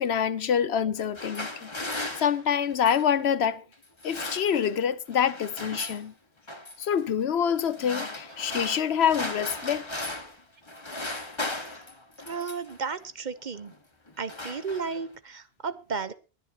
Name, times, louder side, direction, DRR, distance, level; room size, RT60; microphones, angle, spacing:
voice 1, 0.0-1.7 2.2-3.6 4.0-6.1 6.8-9.9, left 8 dB, 80° left, 1.1 m, -26 dB
sound 1, 0.9-3.1 3.8-4.9 5.1-6.0 6.5-6.9 7.6-10.4 10.7-12.8 13.5-13.8 14.1-15.2, left 2 dB, 25° left, 1.7 m, -37 dB
voice 2, 12.2-13.7 14.2-16.1, right 5 dB, 50° right, 0.9 m, -33 dB
22.0 x 10.0 x 2.9 m
omnidirectional pair, 1.1 m